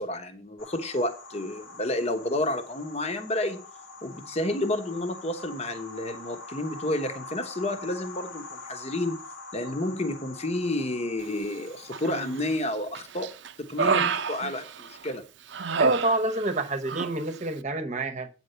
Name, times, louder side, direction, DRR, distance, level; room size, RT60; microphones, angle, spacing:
voice 1, 0.0-3.6 4.0-9.2 9.5-13.3 13.6-15.2, left 1 dB, 35° left, 1.1 m, -30 dB
sound 1, 0.6-12.6, left 3 dB, 90° left, 1.8 m, -44 dB
Human voice, 11.9-12.5 12.9-15.1 15.5-16.6 16.9-17.1, right 5 dB, 65° right, 0.6 m, -28 dB
voice 2, 15.8-18.3, right 2 dB, 35° right, 1.0 m, -28 dB
9.1 x 4.5 x 6.7 m
head